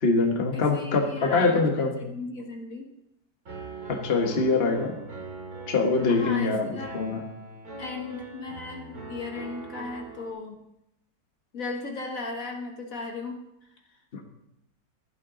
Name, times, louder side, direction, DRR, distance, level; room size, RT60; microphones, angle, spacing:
voice 1, 0.0-2.0 3.9-5.0 5.7-6.7 6.9-7.2, left 3 dB, 35° left, 3 dB, 1.5 m, -23 dB
voice 2, 0.5-2.9 6.1-7.0 7.8-10.5 11.5-13.4, left 3 dB, 50° left, 2 dB, 1.6 m, -36 dB
Piano, 3.5-10.3, right 3 dB, 55° right, 2.8 m, -41 dB
15.0 x 12.0 x 3.8 m, 0.84 s
omnidirectional pair, 1.9 m